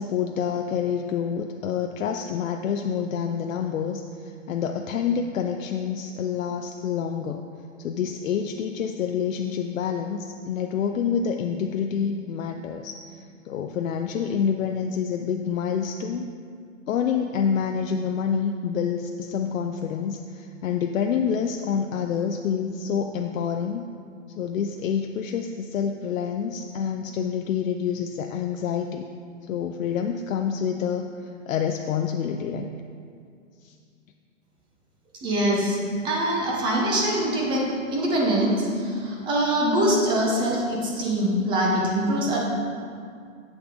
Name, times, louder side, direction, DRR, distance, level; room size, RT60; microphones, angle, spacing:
voice 1, 0.0-7.5 7.8-16.3 16.9-23.9 24.3-29.0 29.5-32.7 33.6-33.7, left 7 dB, 85° left, 4 dB, 0.5 m, -27 dB
voice 2, 35.2-42.4, right 1 dB, 10° right, -2 dB, 0.7 m, -23 dB
7.8 x 6.1 x 3.7 m, 2.3 s
hypercardioid pair, 150°, 39 cm